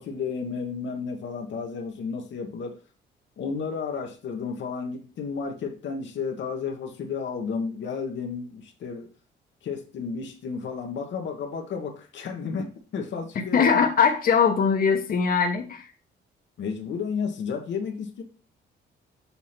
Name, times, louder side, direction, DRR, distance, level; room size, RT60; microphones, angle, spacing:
voice 1, 0.0-2.8 3.4-9.1 9.6-13.9 16.6-18.2, left 5 dB, 65° left, 4 dB, 1.2 m, -32 dB
voice 2, 13.5-15.9, left 6 dB, 45° left, 3 dB, 1.1 m, -21 dB
7.0 x 2.8 x 5.8 m, 0.36 s
cardioid pair, 90°, 20 cm